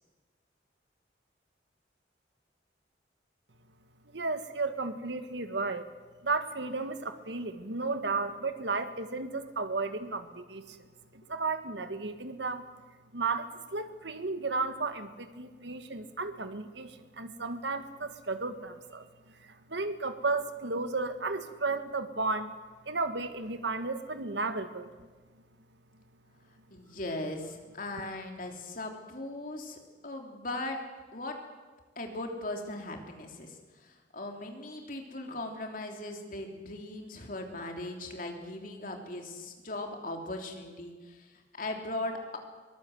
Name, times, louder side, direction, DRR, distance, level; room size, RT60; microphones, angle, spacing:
voice 1, 4.1-5.9 6.2-10.8 11.1-12.7 13.1-22.5 22.8-24.9, right 3 dB, 70° right, 9 dB, 1.6 m, -34 dB
voice 2, 26.7-30.8 31.1-31.4 31.9-42.4, left 2 dB, 45° left, 3 dB, 3.3 m, -39 dB
22.5 x 19.0 x 7.9 m, 1.3 s
head